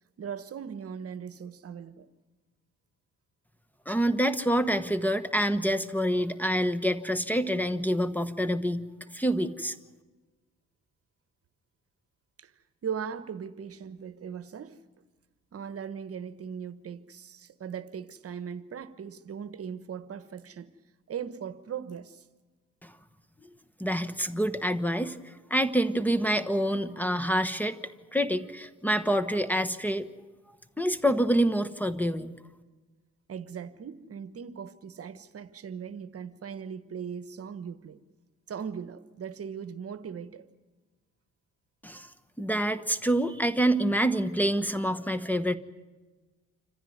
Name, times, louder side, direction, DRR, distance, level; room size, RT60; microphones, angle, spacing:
voice 1, 0.2-2.1 12.4-12.5 12.8-14.8 15.5-20.7 21.1-22.2 33.3-38.0 38.5-40.5, right 7 dB, 50° right, 1.2 m, -39 dB
voice 2, 3.9-8.9 9.1-9.8 22.8-22.9 23.8-27.8 28.1-30.1 30.8-32.3 41.8-42.1 42.4-45.6, equal, 5° left, 1.2 m, -27 dB
27.0 x 15.0 x 9.4 m
cardioid pair, 90°, 30 cm